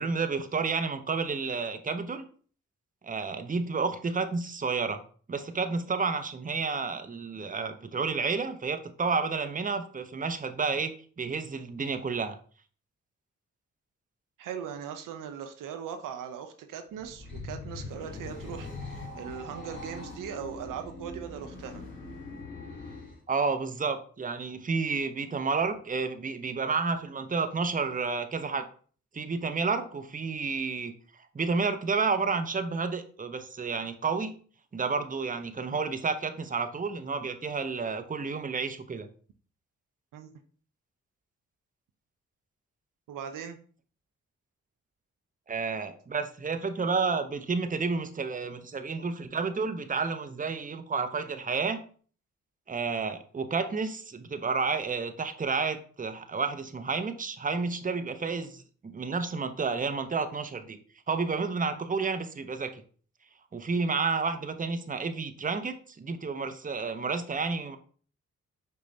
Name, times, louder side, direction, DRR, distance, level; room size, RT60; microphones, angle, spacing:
voice 1, 0.0-2.3 3.0-5.0 5.3-12.4 23.3-28.6 29.1-30.9 31.3-34.3 34.7-39.1 45.5-51.8 52.7-60.8 61.1-62.8 63.5-67.8, right 4 dB, 25° right, 8 dB, 0.6 m, -30 dB
voice 2, 14.4-18.7 19.1-21.8 40.1-40.3 43.1-43.6, right 8 dB, 85° right, 7 dB, 0.5 m, -39 dB
sound 1, 17.0-23.2, left 3 dB, 35° left, 2.0 m, -42 dB
5.1 x 2.3 x 4.0 m, 0.43 s
supercardioid pair, 45°, 31 cm